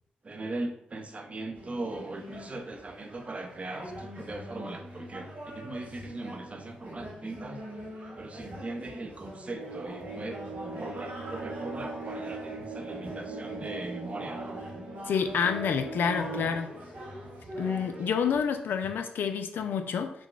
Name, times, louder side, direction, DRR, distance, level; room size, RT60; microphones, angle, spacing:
voice 1, 0.2-10.5 10.8-14.6, right 2 dB, 35° right, 5 dB, 0.5 m, -39 dB
sound 1, 1.5-18.4, equal, 65° right, 1.4 m, -43 dB
sound 2, 9.5-16.6, right 3 dB, 85° right, 0.5 m, -40 dB
voice 2, 15.1-16.7 17.6-20.1, left 7 dB, 70° left, 7 dB, 0.3 m, -28 dB
3.7 x 2.1 x 2.3 m, 0.71 s
hypercardioid pair, 40°, 4 cm